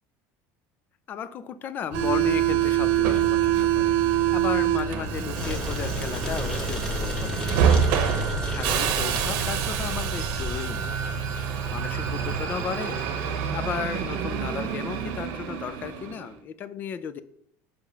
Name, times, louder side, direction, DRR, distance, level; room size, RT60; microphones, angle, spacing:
voice 1, 1.1-7.9 8.2-13.0 13.5-17.2, left 8 dB, 30° left, 13 dB, 0.5 m, -35 dB
Subway metro underground, 1.9-16.3, right 9 dB, 65° right, 1.0 m, -26 dB
sound 1, 5.3-10.6, left 1 dB, 10° left, 1.3 m, -33 dB
5.7 x 5.2 x 6.6 m, 0.69 s
cardioid pair, 175°, 7 cm